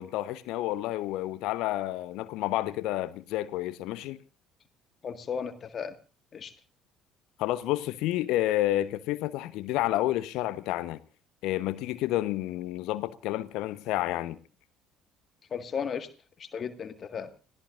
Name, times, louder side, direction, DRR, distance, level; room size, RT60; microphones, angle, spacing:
voice 1, 0.0-4.2 7.4-11.0 11.4-14.4, left 15 dB, 60° left, 0.9 m, -30 dB
voice 2, 5.0-5.9 6.3-6.5 15.5-16.1 16.4-17.3, left 7 dB, 40° left, 1.8 m, -35 dB
29.5 x 16.0 x 2.6 m
figure-of-eight pair, 55°, 0 cm